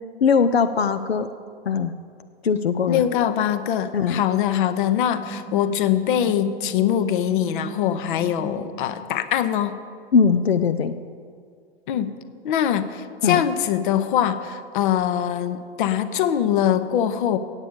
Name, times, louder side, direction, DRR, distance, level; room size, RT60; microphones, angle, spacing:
voice 1, 0.2-1.3 1.7-1.9 2.4-3.1 3.9-4.2 10.1-10.9 13.2-13.4, left 6 dB, 90° left, 9 dB, 0.5 m, -20 dB
voice 2, 2.9-9.8 11.9-12.1 12.4-17.4, left 10 dB, 55° left, 12 dB, 0.7 m, -23 dB
sound 1, 5.0-8.9, right 3 dB, 10° left, 1.5 m, -37 dB
8.3 x 8.1 x 6.9 m, 2.2 s
figure-of-eight pair, 95°, 30 cm